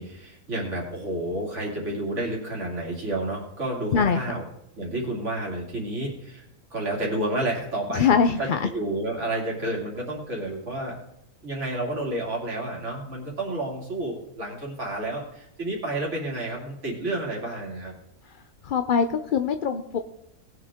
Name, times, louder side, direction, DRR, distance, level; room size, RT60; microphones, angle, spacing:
voice 1, 0.0-4.4 4.8-6.4 6.7-8.1 8.4-11.0 11.4-17.9, right 1 dB, 55° right, -2 dB, 2.9 m, -30 dB
voice 2, 7.9-8.7 18.3-18.4 18.6-20.0, left 6 dB, 55° left, 8 dB, 0.6 m, -22 dB
19.0 x 7.8 x 3.7 m, 0.84 s
omnidirectional pair, 1.5 m